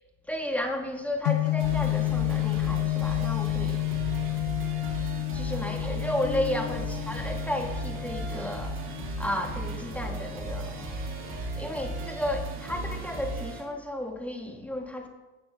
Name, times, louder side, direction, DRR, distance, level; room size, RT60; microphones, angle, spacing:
voice 1, 0.3-3.9 5.3-10.8 11.5-15.1, left 1 dB, 5° left, 2 dB, 1.9 m, -33 dB
sound 1, 1.2-13.3, left 23 dB, 85° left, 0.9 m, -31 dB
sound 2, 1.6-13.6, right 3 dB, 35° right, 3.4 m, -36 dB
Marimba xylophone, 6.2-8.3, left 9 dB, 20° left, 0.7 m, -43 dB
18.0 x 9.2 x 3.8 m, 1.1 s
supercardioid pair, 110°, 36 cm